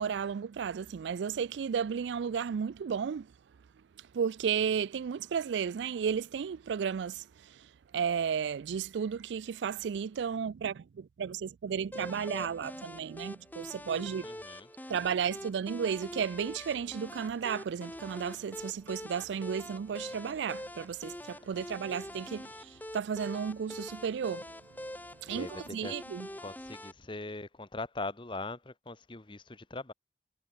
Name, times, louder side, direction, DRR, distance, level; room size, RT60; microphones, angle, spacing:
voice 1, 0.0-3.3 4.1-7.7 7.9-14.3 14.9-24.5 25.2-26.3, right 7 dB, 85° right, 0.4 m, -33 dB
sound 1, 11.9-26.9, left 1 dB, 10° left, 2.5 m, -44 dB
voice 2, 14.2-14.7 25.3-26.0 26.4-29.9, left 2 dB, 30° left, 1.1 m, -41 dB
head